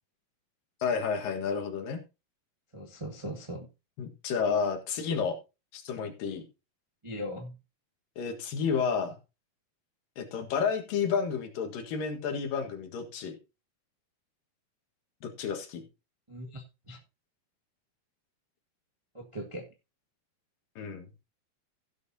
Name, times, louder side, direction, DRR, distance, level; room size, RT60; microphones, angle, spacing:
voice 1, 0.8-2.0 4.0-5.4 5.7-6.4 8.2-9.2 10.2-13.4 15.2-15.8 20.8-21.1, left 6 dB, 75° left, 5 dB, 3.3 m, -31 dB
voice 2, 2.7-3.7 7.0-7.5 16.3-17.0 19.1-19.7, equal, 25° right, 1 dB, 0.6 m, -39 dB
16.5 x 8.0 x 2.8 m, 0.28 s
omnidirectional pair, 4.0 m